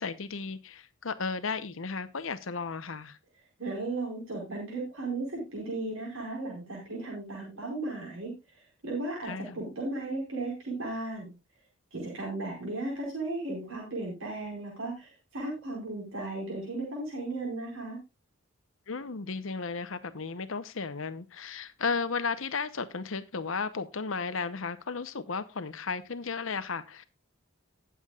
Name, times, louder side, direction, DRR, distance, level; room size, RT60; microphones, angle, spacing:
voice 1, 0.0-3.2 9.2-9.6 18.9-27.0, left 4 dB, 70° left, 0.8 m, -34 dB
voice 2, 3.6-11.4 11.9-18.0, right 2 dB, 70° right, 4.6 m, -35 dB
19.5 x 7.1 x 2.4 m
head